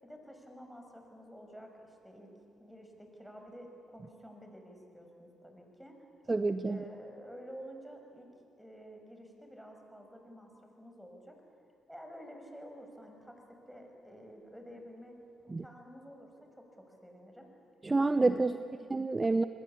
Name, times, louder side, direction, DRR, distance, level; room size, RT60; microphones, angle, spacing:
voice 1, 0.0-2.3 2.6-6.0 6.6-8.3 8.6-11.4 11.9-15.2 15.4-17.5 18.4-18.9, equal, ahead, 3 dB, 6.5 m, -51 dB
voice 2, 6.3-6.8 15.5-15.6 17.8-18.6 18.9-19.4, right 3 dB, 25° right, 11 dB, 0.8 m, -28 dB
27.0 x 20.0 x 8.7 m, 2.7 s
hypercardioid pair, 50°, 0 cm